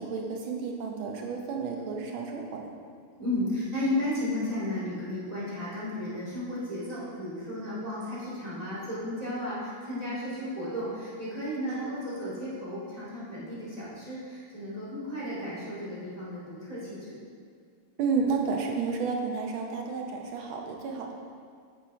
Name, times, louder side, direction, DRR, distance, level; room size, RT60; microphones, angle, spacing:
voice 1, 0.0-2.7 11.7-12.0 18.0-21.1, right 5 dB, 85° right, 1 dB, 1.7 m, -31 dB
voice 2, 3.2-17.2, left 1 dB, 20° right, -9 dB, 2.1 m, -34 dB
8.7 x 6.3 x 3.5 m, 2.1 s
omnidirectional pair, 2.2 m